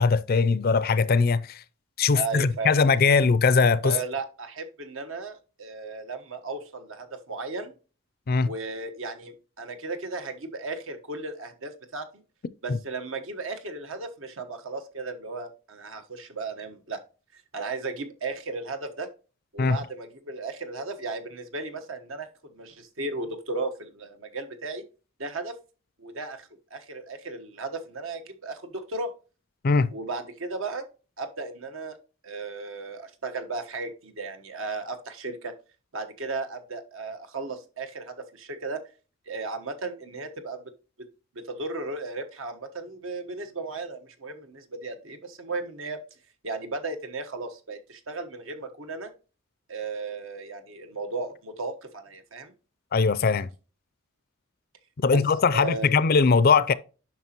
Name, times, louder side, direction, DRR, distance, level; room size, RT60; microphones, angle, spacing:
voice 1, 0.0-1.6 2.0-4.0 8.3-8.5 12.7-12.8 19.6-19.8 29.6-29.9 52.9-53.5 55.0-56.7, left 4 dB, 50° left, 0.4 m, -21 dB
voice 2, 2.1-2.9 3.8-7.7 8.4-12.2 12.6-17.0 17.3-19.1 19.5-24.8 25.2-25.5 26.0-29.1 29.9-30.9 31.2-32.0 32.2-35.5 35.9-38.8 39.3-40.7 41.5-46.0 46.4-49.1 49.7-52.5 55.1-55.2 55.5-55.9, right 3 dB, 75° right, 1.2 m, -35 dB
9.2 x 6.0 x 2.9 m
head